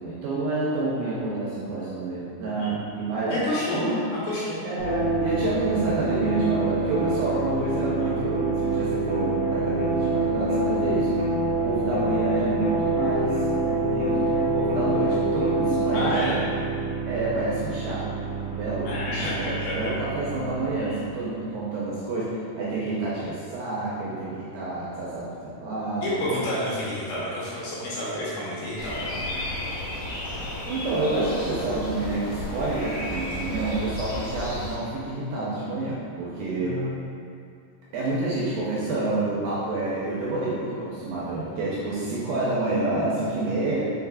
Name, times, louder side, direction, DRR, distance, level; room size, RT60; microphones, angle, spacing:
voice 1, 0.0-3.9 4.6-11.1 11.5-13.4 13.7-16.4 17.1-18.1 18.4-19.5 19.7-26.3 30.1-30.2 30.7-36.8 37.9-43.9, right 2 dB, 85° right, -7 dB, 2.2 m, -28 dB
voice 2, 3.3-4.8 15.9-16.5 18.8-19.9 20.8-21.0 26.0-29.4 36.6-36.9, left 1 dB, 75° left, -8 dB, 2.5 m, -29 dB
sound 1, 4.8-21.5, right 2 dB, 65° right, 1.1 m, -26 dB
sound 2, 28.8-34.7, left 1 dB, 60° left, 1.6 m, -33 dB
5.5 x 3.9 x 2.3 m, 2.5 s
omnidirectional pair, 4.6 m